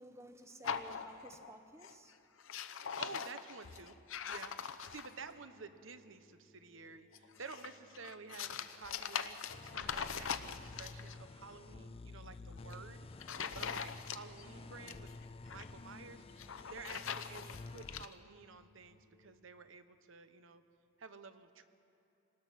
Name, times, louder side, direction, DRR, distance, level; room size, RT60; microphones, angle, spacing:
voice 1, 0.0-2.1, right 1 dB, 15° right, 7 dB, 1.0 m, -54 dB
sound 1, 0.6-1.5 1.8-2.1 2.4-5.3 7.1-11.2 12.5-12.8 13.2-14.5 14.7-15.7 16.3-18.1, left 7 dB, 65° left, 0.8 m, -42 dB
voice 2, 3.0-4.0 4.2-13.1 13.4-15.1 15.4-20.6 21.0-21.6, right 4 dB, 65° right, 10 dB, 1.0 m, -52 dB
sound 2, 4.5-19.3, left 1 dB, 50° left, 1.5 m, -68 dB
sound 3, 9.5-18.1, left 3 dB, 25° left, 0.4 m, -51 dB
27.0 x 19.5 x 5.9 m, 2.8 s
head